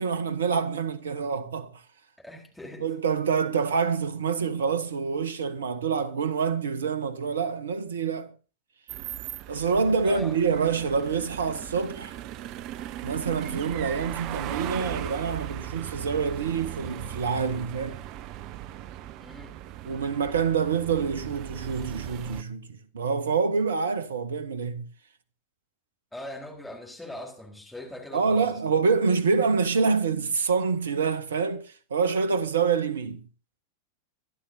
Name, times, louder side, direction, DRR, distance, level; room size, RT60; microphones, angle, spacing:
voice 1, 0.0-1.8 2.8-8.3 9.5-12.2 13.0-18.0 19.8-24.8 28.1-33.2, right 5 dB, 65° right, 1.1 m, -26 dB
voice 2, 2.2-2.9 10.0-10.4 19.2-19.6 26.1-28.5, left 1 dB, 5° left, 4.4 m, -40 dB
sound 1, 8.9-22.4, right 12 dB, 40° right, 0.6 m, -38 dB
24.0 x 11.5 x 2.7 m
figure-of-eight pair, 90°, 0 cm